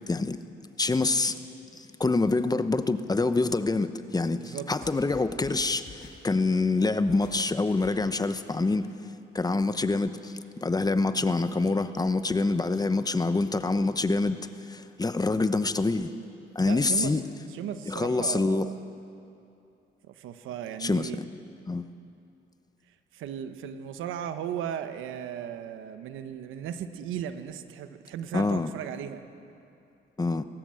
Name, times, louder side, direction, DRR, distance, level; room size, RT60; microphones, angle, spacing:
voice 1, 0.1-0.4 0.8-1.4 1.7-8.9 9.3-14.4 14.7-16.1 16.5-17.2 17.9-18.7 20.8-21.1 21.7-21.8 28.3-28.7 30.2-30.4, left 3 dB, 20° left, 11 dB, 0.9 m, -26 dB
voice 2, 4.3-4.7 16.6-18.8 20.1-21.2 23.1-29.2, right 9 dB, 90° right, 9 dB, 1.2 m, -36 dB
sound 1, 4.8-8.3, left 4 dB, 60° left, 6.9 m, -50 dB
20.0 x 18.0 x 7.7 m, 2.6 s
cardioid pair, 90°, 20 cm